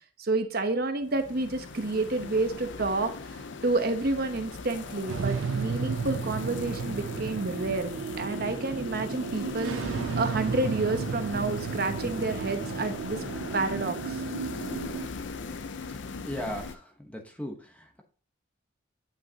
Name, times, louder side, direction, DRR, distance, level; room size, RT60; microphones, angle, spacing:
voice 1, 0.2-7.9 8.2-13.2 13.5-14.2, right 2 dB, 50° right, 7 dB, 0.9 m, -29 dB
sound 1, 1.0-16.8, left 4 dB, 60° left, 0.5 m, -39 dB
sound 2, 5.1-15.1, right 6 dB, 65° right, 0.3 m, -34 dB
voice 2, 16.3-18.0, equal, 5° left, 3 dB, 0.9 m, -37 dB
9.5 x 5.5 x 2.8 m, 0.42 s
head